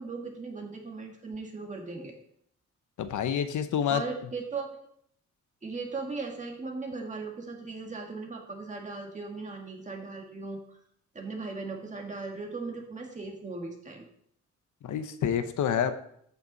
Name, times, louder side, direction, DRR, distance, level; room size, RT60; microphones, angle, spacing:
voice 1, 0.0-2.2 3.9-4.8 5.6-10.8 11.1-14.0, right 4 dB, 25° right, 1 dB, 1.8 m, -38 dB
voice 2, 3.0-4.0 14.8-15.9, left 8 dB, 80° left, 9 dB, 0.9 m, -28 dB
14.0 x 5.9 x 4.0 m, 0.69 s
wide cardioid pair, 155°, 30 cm